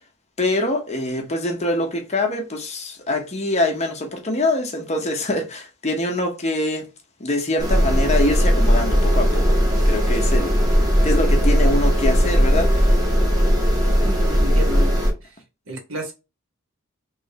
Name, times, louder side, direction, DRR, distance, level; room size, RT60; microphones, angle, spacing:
voice 1, 0.4-6.9 7.2-9.6 9.9-10.6 11.0-12.9, left 1 dB, 30° left, 0.8 m, -24 dB
sound 1, 7.6-15.1, equal, 20° right, 1.0 m, -18 dB
voice 2, 14.0-14.9 15.2-15.3 15.7-16.1, right 1 dB, 65° right, 1.1 m, -31 dB
3.1 x 3.0 x 2.8 m
head